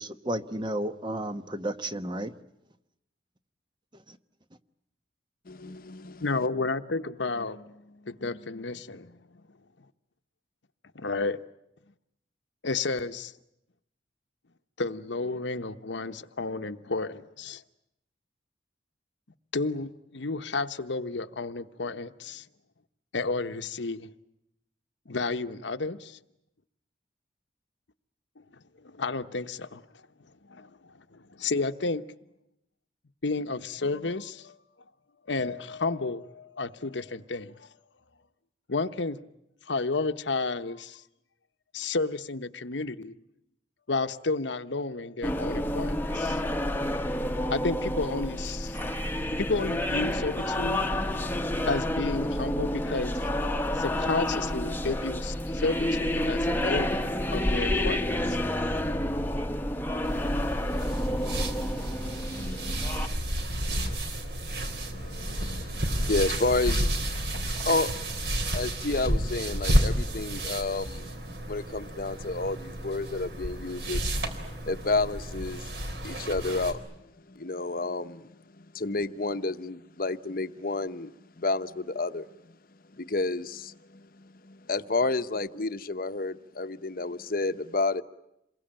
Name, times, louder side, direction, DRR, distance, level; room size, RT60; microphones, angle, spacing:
voice 1, 0.0-2.3, right 1 dB, 25° right, 1.0 m, -32 dB
voice 2, 5.5-6.3 62.4-62.7 63.8-63.9 64.9-68.3 68.5-71.1 71.5-75.7 76.0-76.9 77.3-81.1 81.4-82.3 82.9-88.0, left 3 dB, 50° left, 1.0 m, -31 dB
voice 3, 6.2-9.2 10.9-11.4 12.6-13.3 14.8-17.6 19.5-22.5 23.1-24.1 25.1-26.2 28.8-29.8 30.5-31.0 31.3-32.0 33.2-34.6 35.3-37.7 38.7-39.2 39.7-41.0 41.7-43.2 43.9-46.4 47.5-48.8 49.4-50.9 51.6-53.2 53.7-58.4, left 3 dB, 80° left, 1.0 m, -31 dB
sound 1, 45.2-63.1, left 1 dB, 10° left, 1.1 m, -29 dB
sound 2, 60.0-76.7, right 1 dB, 60° right, 3.8 m, -31 dB
28.0 x 22.5 x 8.9 m
head